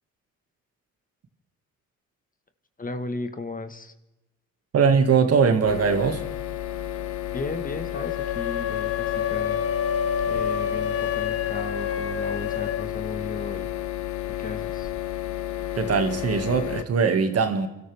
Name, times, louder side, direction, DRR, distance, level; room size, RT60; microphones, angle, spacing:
voice 1, 2.8-3.9 7.3-9.6 10.3-13.7 14.2-14.9, left 3 dB, 30° left, 1.4 m, -35 dB
voice 2, 4.7-6.2 15.8-17.7, right 5 dB, 55° right, 2.0 m, -21 dB
sound 1, 5.7-16.8, left 12 dB, 70° left, 1.1 m, -32 dB
sound 2, 7.9-12.9, left 8 dB, 50° left, 0.9 m, -28 dB
29.5 x 13.0 x 3.5 m
cardioid pair, 90°, 30 cm